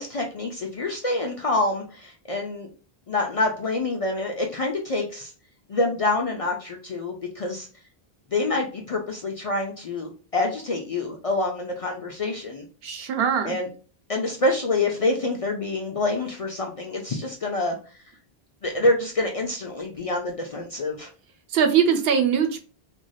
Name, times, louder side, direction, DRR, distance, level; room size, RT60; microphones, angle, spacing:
voice 1, 0.0-2.7 3.1-5.3 5.7-7.7 8.3-12.6 13.4-13.7 14.1-17.8 18.6-21.1, left 2 dB, 50° left, 1 dB, 0.4 m, -26 dB
voice 2, 12.8-13.6 21.5-22.6, right 7 dB, 75° right, 7 dB, 0.8 m, -21 dB
3.2 x 2.6 x 2.2 m, 0.37 s
omnidirectional pair, 1.0 m